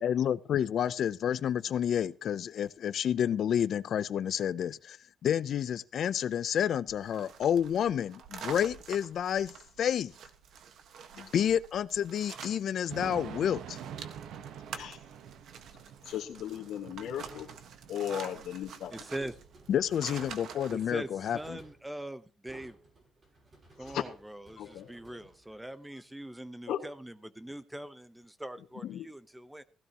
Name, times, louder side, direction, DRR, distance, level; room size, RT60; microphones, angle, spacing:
voice 1, 0.0-5.0 5.2-10.1 11.2-13.8 19.7-21.6, left 9 dB, 55° left, 0.5 m, -30 dB
Thunder / Rain, 6.9-20.3, right 8 dB, 80° right, 1.0 m, -48 dB
sound 1, 7.0-13.2 13.4-20.9, right 7 dB, 65° right, 1.4 m, -47 dB
voice 2, 16.0-17.5 17.9-18.9 23.8-24.0 24.6-25.2 26.7-26.8 28.8-29.1, left 10 dB, 75° left, 1.7 m, -36 dB
sound 2, 16.3-17.9 18.9-26.1, right 2 dB, 30° right, 5.9 m, -58 dB
voice 3, 18.9-19.3 20.7-22.8 23.8-29.6, right 1 dB, 5° right, 0.8 m, -42 dB
16.0 x 15.5 x 3.0 m
cardioid pair, 150°, 0 cm